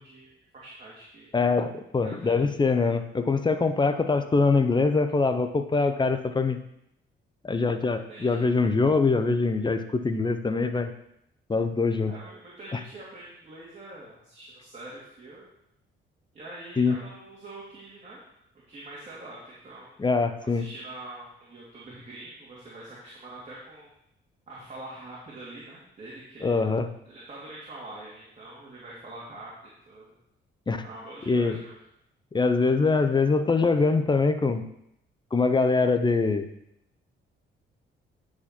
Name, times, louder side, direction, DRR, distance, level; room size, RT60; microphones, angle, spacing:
voice 1, 0.0-1.3 2.0-2.4 8.1-8.5 12.1-15.5 16.3-18.2 18.7-19.9 20.4-23.9 24.5-26.6 27.0-30.1 30.8-31.8, right 2 dB, 35° right, -7 dB, 2.6 m, -44 dB
voice 2, 1.3-6.6 7.4-10.9 11.5-12.1 12.7-12.8 16.8-17.0 20.0-20.6 26.4-26.9 30.7-30.8 31.3-31.6 32.3-34.6 35.3-36.5, left 4 dB, 25° left, 8 dB, 0.7 m, -23 dB
9.9 x 4.8 x 4.4 m, 0.77 s
cardioid pair, 90°, 20 cm